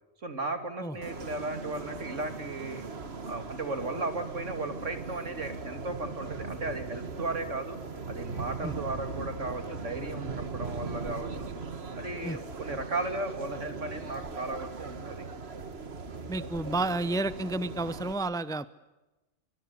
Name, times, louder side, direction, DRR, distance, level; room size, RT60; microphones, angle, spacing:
voice 1, 0.2-2.8 3.3-7.8 8.1-11.5 12.0-15.2, right 2 dB, 80° right, 7 dB, 3.2 m, -35 dB
sound 1, 1.0-18.1, right 4 dB, 55° right, 1.9 m, -39 dB
voice 2, 16.3-18.7, right 2 dB, 5° left, 15 dB, 0.7 m, -31 dB
24.5 x 24.0 x 8.4 m, 1.0 s
omnidirectional pair, 1.3 m